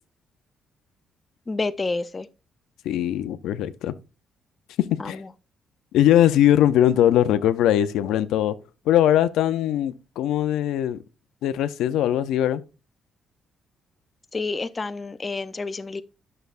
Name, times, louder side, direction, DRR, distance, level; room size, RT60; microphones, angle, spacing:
voice 1, 1.5-2.3 5.0-5.3 14.3-16.0, left 3 dB, 25° left, 0.5 m, -29 dB
voice 2, 2.9-3.9 4.8-5.2 5.9-8.6 8.9-11.0 11.4-12.6, left 11 dB, 85° left, 0.5 m, -20 dB
9.3 x 6.6 x 2.5 m
cardioid pair, 90°, 0 cm